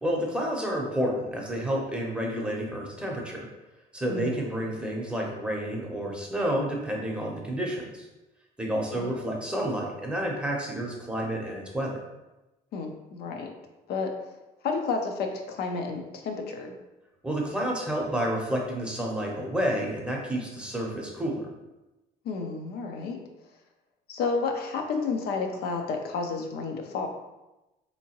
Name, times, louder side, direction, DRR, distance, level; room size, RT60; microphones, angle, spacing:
voice 1, 0.0-3.5 3.9-8.1 8.6-11.9 17.2-21.5, equal, 5° right, -1 dB, 0.7 m, -30 dB
voice 2, 4.1-4.4 8.9-9.1 12.7-13.6 13.9-14.1 14.6-16.7 22.2-23.2 24.1-27.1, left 4 dB, 70° left, 4 dB, 0.5 m, -31 dB
3.5 x 2.8 x 2.9 m, 1.0 s
cardioid pair, 110°, 17 cm